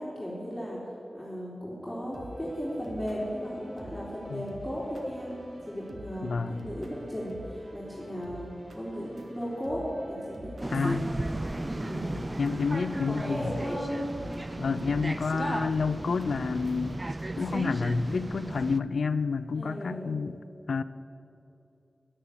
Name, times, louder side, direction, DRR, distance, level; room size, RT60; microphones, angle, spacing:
voice 1, 0.0-11.0 11.7-12.2 12.7-14.0 14.5-15.0 15.3-15.6 19.5-20.2, equal, 10° left, -6 dB, 3.5 m, -36 dB
sound 1, 2.1-17.1, right 1 dB, 65° right, 1.5 m, -48 dB
voice 2, 6.2-6.7 10.7-11.0 12.1-13.6 14.6-17.0 17.4-20.4 20.7-20.8, left 4 dB, 90° left, 14 dB, 0.4 m, -29 dB
sound 2, 10.6-18.8, right 2 dB, 30° right, 0.5 m, -35 dB
11.0 x 9.9 x 8.6 m, 2.7 s
cardioid pair, 55°, 0 cm